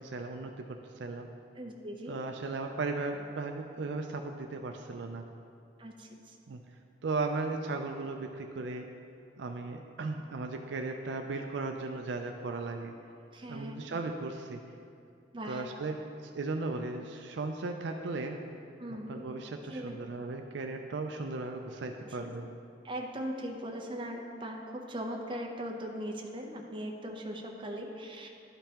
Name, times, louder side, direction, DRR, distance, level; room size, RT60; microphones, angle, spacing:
voice 1, 0.0-1.3 2.1-5.2 6.5-6.6 7.0-8.9 9.4-12.9 13.5-14.6 15.4-15.9 16.2-18.4 19.1-22.5, right 3 dB, 65° right, 4 dB, 0.4 m, -36 dB
voice 2, 1.5-2.2 5.8-6.3 13.3-13.9 15.3-15.6 18.8-19.2 19.7-20.0 22.0-22.3 22.8-28.3, equal, 25° right, 1 dB, 0.7 m, -39 dB
12.0 x 5.2 x 2.9 m, 2.5 s
head